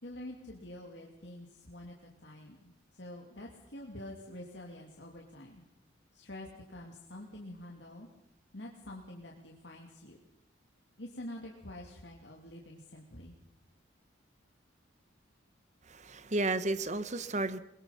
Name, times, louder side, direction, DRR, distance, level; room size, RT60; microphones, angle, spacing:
voice 1, 0.0-1.9 2.2-5.6 6.1-8.1 8.5-10.2 11.0-13.3, left 1 dB, 65° left, 0 dB, 2.6 m, -47 dB
voice 2, 15.9-17.6, right 2 dB, 40° right, 12 dB, 1.1 m, -32 dB
22.5 x 21.5 x 5.9 m, 0.90 s
head